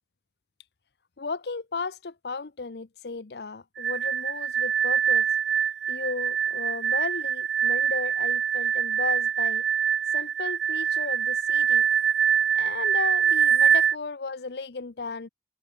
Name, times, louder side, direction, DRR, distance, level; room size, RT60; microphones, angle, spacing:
voice 1, 1.2-5.3 5.9-9.6 10.1-11.9 12.6-15.3, left 4 dB, 70° left, 0.8 m, -35 dB
sound 1, 3.8-13.9, right 8 dB, 90° right, 0.7 m, -24 dB
head